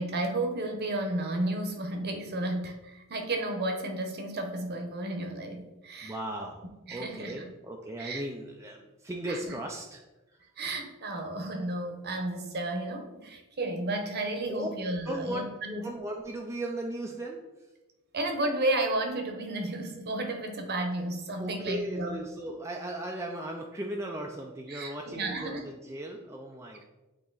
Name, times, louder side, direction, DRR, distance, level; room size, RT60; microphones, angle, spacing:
voice 1, 0.0-6.1 6.9-7.4 8.0-8.2 9.3-9.4 10.6-15.8 18.1-22.2 24.7-25.7, right 2 dB, 45° right, 4 dB, 0.9 m, -32 dB
voice 2, 6.0-6.6 6.9-10.0 10.3-10.4 14.5-14.7 15.0-17.7 21.4-26.9, right 1 dB, 15° right, 0 dB, 0.4 m, -37 dB
8.4 x 2.9 x 4.0 m, 1.1 s
head